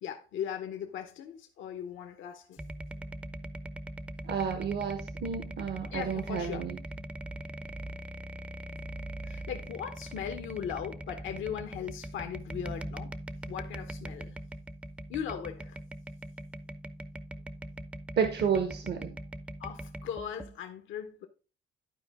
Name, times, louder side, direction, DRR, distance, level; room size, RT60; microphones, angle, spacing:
voice 1, 0.0-2.6 5.9-6.6 9.2-13.1 13.5-14.4 15.1-15.8 19.6-21.3, left 8 dB, 80° left, 0.9 m, -38 dB
sound 1, 2.6-20.6, right 1 dB, 5° right, 0.5 m, -41 dB
voice 2, 4.2-6.8 18.2-19.2, right 7 dB, 60° right, 0.8 m, -31 dB
11.5 x 4.6 x 3.4 m
cardioid pair, 90°, 20 cm